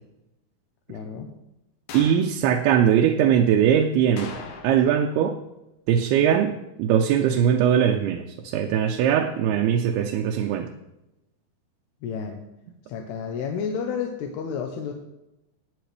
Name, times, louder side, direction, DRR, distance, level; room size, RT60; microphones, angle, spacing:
voice 1, 0.9-1.3 12.0-12.4 12.9-14.9, left 6 dB, 80° left, 3 dB, 2.9 m, -31 dB
sound 1, 1.9-2.3 4.2-5.0 5.3-5.4 10.4-10.5, left 4 dB, 60° left, 2.2 m, -39 dB
voice 2, 1.9-4.3 4.6-5.4 5.9-10.7, right 9 dB, 80° right, 3 dB, 2.6 m, -21 dB
18.5 x 8.0 x 3.4 m, 0.94 s
omnidirectional pair, 4.7 m